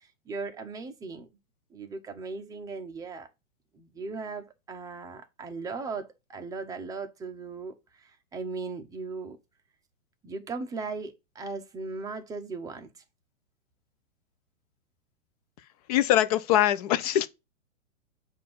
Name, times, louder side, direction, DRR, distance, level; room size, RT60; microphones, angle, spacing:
voice 1, 0.0-1.3 1.7-3.3 3.7-9.4 10.2-12.9, right 4 dB, 10° right, 0.7 m, -38 dB
voice 2, 15.9-17.3, left 12 dB, 30° left, 0.5 m, -23 dB
7.5 x 2.7 x 5.3 m
hypercardioid pair, 125°, 39 cm